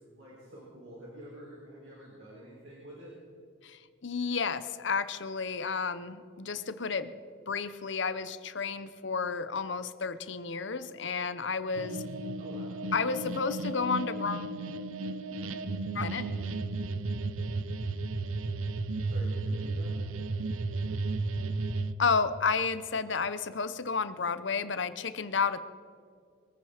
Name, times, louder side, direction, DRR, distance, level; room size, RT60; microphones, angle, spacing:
voice 1, 0.0-3.2 12.4-12.8 19.1-19.9, right 1 dB, 60° right, -6 dB, 4.2 m, -48 dB
voice 2, 3.6-7.1 7.5-12.1 12.9-14.5 15.9-16.3 22.0-25.6, left 5 dB, 60° left, 13 dB, 0.8 m, -31 dB
sound 1, 11.8-21.9, right 3 dB, 85° right, 0.7 m, -34 dB
23.0 x 9.2 x 5.0 m, 2.3 s
head